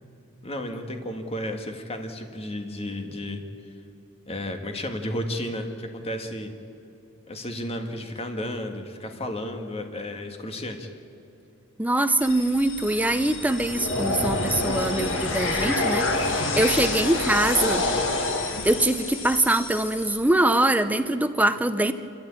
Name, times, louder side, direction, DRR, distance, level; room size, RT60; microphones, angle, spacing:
voice 1, 0.4-3.4 4.3-6.5 7.3-10.9, left 1 dB, 30° left, 4 dB, 1.8 m, -33 dB
voice 2, 11.8-17.8 18.6-21.9, right 1 dB, 10° right, 10 dB, 0.6 m, -23 dB
sound 1, 12.2-20.2, left 2 dB, 65° left, 2.2 m, -27 dB
28.0 x 13.5 x 8.9 m, 2.8 s
head